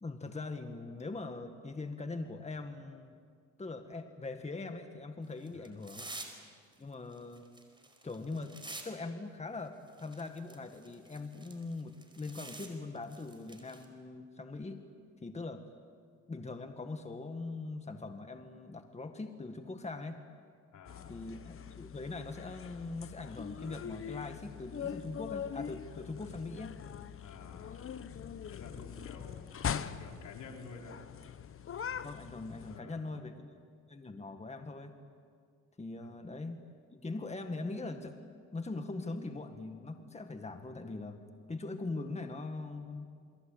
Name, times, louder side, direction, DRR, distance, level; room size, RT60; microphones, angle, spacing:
voice 1, 0.0-3.2 3.6-6.1 6.8-7.4 8.0-8.5 8.8-14.8 15.2-15.6 16.3-20.2 21.1-26.7 28.8-29.2 32.0-33.6 33.9-34.9 35.8-36.6 36.9-38.2 38.5-43.1, left 3 dB, 20° left, 6 dB, 1.9 m, -41 dB
sound 1, 5.2-6.4 6.7-8.8 9.2-9.3 9.9-12.7 13.0-13.8, right 2 dB, 15° right, 4.7 m, -48 dB
voice 2, 20.7-21.2 27.2-27.9 28.5-31.0 32.7-33.1 36.0-36.1, left 4 dB, 75° left, 1 dB, 4.5 m, -51 dB
sound 2, 20.9-32.8, left 8 dB, 45° left, 1.1 m, -42 dB
28.5 x 22.0 x 8.6 m, 2.1 s
cardioid pair, 90°, 30 cm